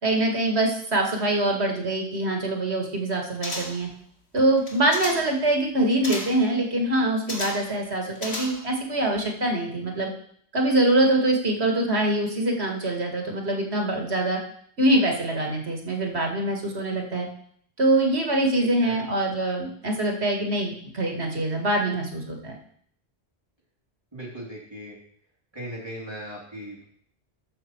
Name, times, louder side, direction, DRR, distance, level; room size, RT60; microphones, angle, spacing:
voice 1, 0.0-3.9 4.3-10.1 10.5-14.4 14.8-17.3 17.8-22.6, right 1 dB, 75° right, 1 dB, 2.2 m, -24 dB
sound 1, 3.4-3.9 4.6-5.4 6.0-6.5 7.3-7.7 8.2-8.8 9.1-9.2, left 2 dB, 75° left, 2.3 m, -34 dB
voice 2, 24.1-25.0 25.5-26.8, equal, 25° right, -5 dB, 3.5 m, -38 dB
13.0 x 6.4 x 4.6 m, 0.62 s
omnidirectional pair, 1.1 m